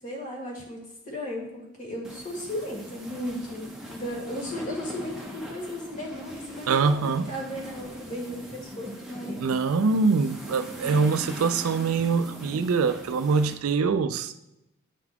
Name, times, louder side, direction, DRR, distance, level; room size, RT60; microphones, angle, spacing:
voice 1, 0.0-9.4 12.0-12.1, left 1 dB, 40° left, -3 dB, 1.8 m, -35 dB
sound 1, 2.0-13.5, equal, ahead, 0.7 m, -41 dB
voice 2, 6.7-7.3 9.4-14.3, right 4 dB, 75° right, 11 dB, 0.4 m, -24 dB
9.7 x 4.0 x 2.9 m, 0.91 s
head